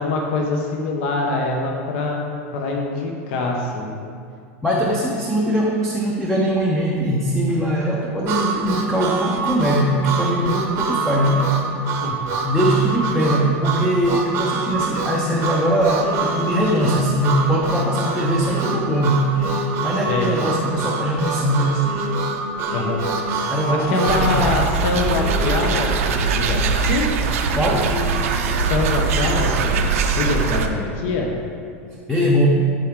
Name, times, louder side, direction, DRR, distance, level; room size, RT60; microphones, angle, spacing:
voice 1, 0.0-2.3 2.5-3.9 12.0-12.2 20.1-20.3 22.7-23.0 23.7-27.1 28.6-31.3, left 3 dB, 55° left, 0 dB, 1.0 m, -24 dB
voice 2, 4.6-11.4 12.4-19.2 19.8-21.9 23.5-24.5 27.5-28.0 32.1-32.5, equal, 5° left, -4 dB, 0.7 m, -21 dB
Harmonica, 8.3-24.2, right 5 dB, 35° right, 0.8 m, -26 dB
sound 1, 16.0-27.0 27.7-29.2, left 3 dB, 30° left, 1.4 m, -34 dB
sound 2, 24.1-30.7, right 5 dB, 85° right, 0.7 m, -21 dB
12.0 x 4.6 x 3.7 m, 2.3 s
supercardioid pair, 160°, 7 cm